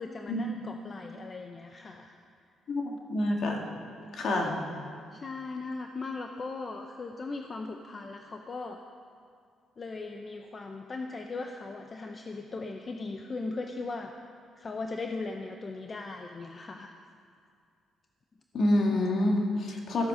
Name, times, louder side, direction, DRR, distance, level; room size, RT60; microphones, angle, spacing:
voice 1, 0.0-2.2 5.1-8.8 9.8-14.1 14.6-17.0, left 3 dB, 35° left, 4 dB, 0.7 m, -38 dB
voice 2, 2.7-3.6 4.1-4.6 18.5-20.1, left 1 dB, 60° left, 1 dB, 2.0 m, -27 dB
15.0 x 8.6 x 5.7 m, 2.3 s
cardioid pair, 90°, 0 cm